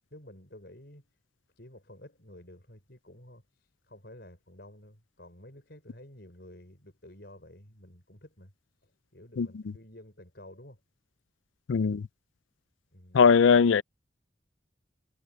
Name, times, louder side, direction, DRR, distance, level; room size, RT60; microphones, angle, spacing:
voice 1, 0.1-1.2 1.6-8.5 8.8-10.8 12.9-13.2, left 1 dB, 60° left, 5.7 m, -51 dB
voice 2, 11.7-12.1 13.1-13.8, left 6 dB, 90° left, 0.4 m, -20 dB
head